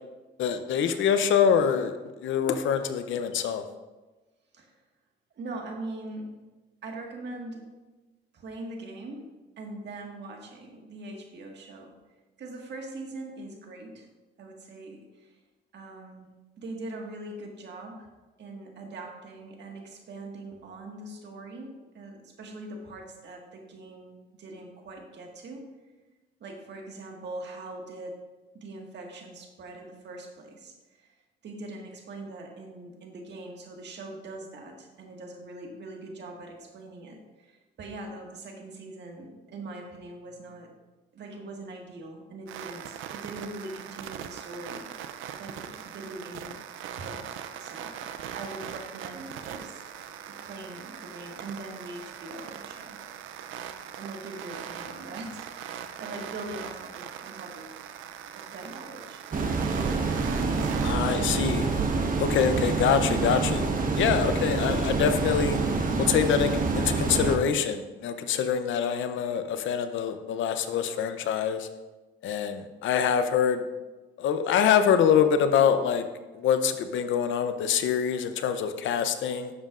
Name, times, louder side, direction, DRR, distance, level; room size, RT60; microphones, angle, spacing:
voice 1, 0.4-3.6 60.8-61.7 62.2-63.7 63.9-65.6 66.0-71.7 72.2-73.6 74.2-76.0 76.3-79.5, left 8 dB, 75° left, 9 dB, 0.7 m, -25 dB
voice 2, 5.3-6.4 6.8-7.6 8.3-11.9 12.4-14.1 14.4-15.4 15.7-16.3 16.6-18.1 18.4-25.7 26.4-28.2 28.5-31.1 31.4-40.7 41.1-44.9 45.4-46.5 47.0-47.3 47.6-48.0 48.3-49.8 50.3-53.0 54.0-57.8 58.3-59.2 60.3-60.9, right 2 dB, 60° right, 1 dB, 1.7 m, -42 dB
sound 1, 42.5-60.9, right 9 dB, 85° right, 0.5 m, -41 dB
sound 2, 59.3-67.4, right 4 dB, 45° right, 1.2 m, -27 dB
11.0 x 7.5 x 2.5 m, 1.2 s
cardioid pair, 90°, 20 cm